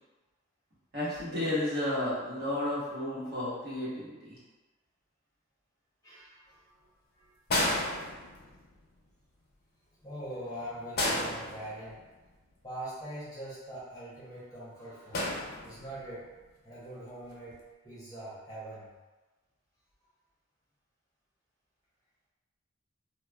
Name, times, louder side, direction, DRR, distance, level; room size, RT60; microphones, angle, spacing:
voice 1, 0.9-4.3, left 1 dB, 55° right, -10 dB, 1.0 m, -32 dB
voice 2, 6.0-6.8 7.1-7.3 10.0-12.0 12.6-15.3 15.6-16.3 16.6-18.9, right 1 dB, 20° left, -9 dB, 0.8 m, -43 dB
sound 1, 7.5-8.7 11.0-12.2 15.1-16.1 17.3-17.5, left 1 dB, 55° left, 0.5 m, -32 dB
3.0 x 2.0 x 2.3 m, 1.2 s
head